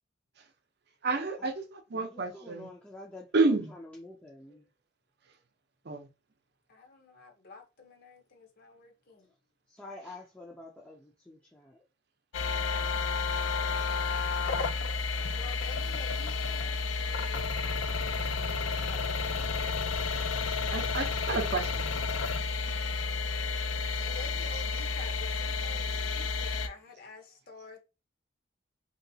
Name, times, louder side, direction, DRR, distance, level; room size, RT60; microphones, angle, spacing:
voice 1, 1.0-2.7 3.3-3.7 5.8-6.1 20.7-22.0 22.7-22.8, right 3 dB, 55° right, 0.6 m, -30 dB
voice 2, 1.9-3.3 3.7-4.7 9.7-11.8, left 2 dB, 10° left, 0.4 m, -48 dB
voice 3, 6.7-9.3 15.1-17.5 18.0-19.2 24.0-27.8, left 4 dB, 50° left, 0.8 m, -49 dB
sound 1, 12.3-26.7, left 4 dB, 75° left, 0.5 m, -31 dB
3.1 x 2.9 x 2.6 m
head